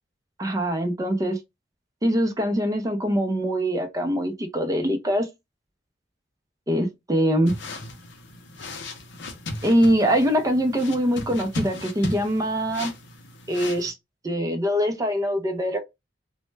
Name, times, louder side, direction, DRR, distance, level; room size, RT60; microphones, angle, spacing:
voice 1, 0.4-1.4 2.0-5.3 6.7-7.5 9.6-12.9 13.5-13.9 14.2-15.8, equal, 20° right, 0.4 m, -23 dB
sound 1, 7.5-13.9, left 2 dB, 70° left, 0.5 m, -36 dB
2.1 x 2.1 x 3.1 m
head